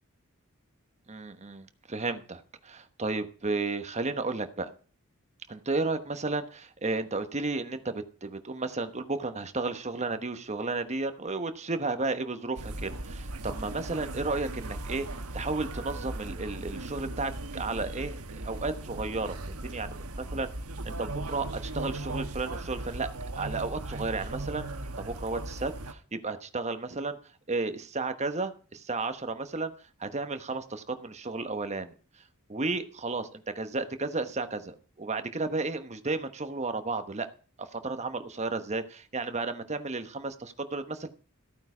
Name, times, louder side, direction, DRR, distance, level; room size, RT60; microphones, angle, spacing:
voice 1, 1.1-4.7 5.5-20.5 20.8-23.1 23.4-24.7 25.0-27.2 27.5-29.7 30.0-31.9 32.5-37.3 37.6-41.1, right 3 dB, 30° right, 9 dB, 1.1 m, -33 dB
sound 1, 12.6-25.9, right 2 dB, 90° right, 1.3 m, -38 dB
14.5 x 8.9 x 5.0 m, 0.40 s
head